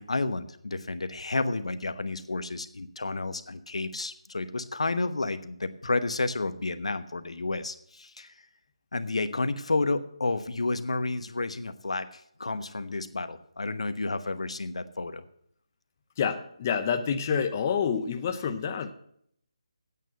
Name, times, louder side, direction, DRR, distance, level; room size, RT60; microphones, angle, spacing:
voice 1, 0.0-8.3 8.9-15.2, left 3 dB, 80° left, 11 dB, 1.1 m, -31 dB
voice 2, 16.2-18.9, left 7 dB, 25° left, 6 dB, 0.7 m, -28 dB
9.0 x 8.4 x 7.6 m, 0.67 s
figure-of-eight pair, 165°, 3 cm